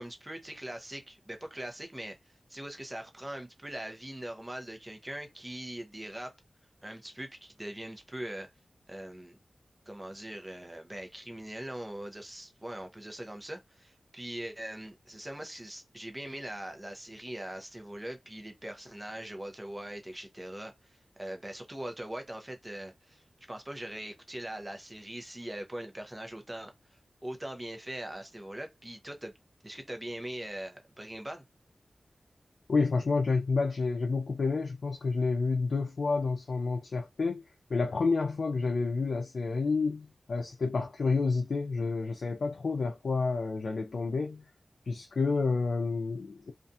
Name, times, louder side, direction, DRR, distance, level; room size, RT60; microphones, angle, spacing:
voice 1, 0.0-2.2 2.5-6.3 6.8-8.5 8.9-9.4 9.9-26.7 27.2-29.3 29.6-31.4, right 1 dB, 15° right, 0.7 m, -41 dB
voice 2, 32.7-37.4 37.7-44.4 44.9-46.5, left 4 dB, 80° left, 0.4 m, -29 dB
2.5 x 2.3 x 2.6 m
wide cardioid pair, 100°, 0 cm